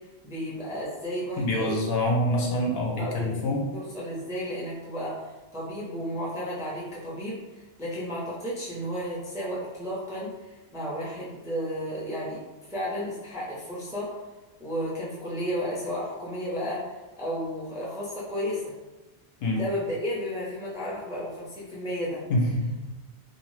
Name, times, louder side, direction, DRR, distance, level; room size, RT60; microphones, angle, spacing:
voice 1, 0.2-1.8 3.0-12.4 12.7-14.2 14.6-18.8 19.5-22.2, equal, 5° right, -6 dB, 0.4 m, -33 dB
voice 2, 1.4-3.6 19.4-19.6 22.3-22.9, left 1 dB, 70° left, -1 dB, 0.8 m, -26 dB
2.7 x 2.1 x 3.1 m, 1.1 s
omnidirectional pair, 1.1 m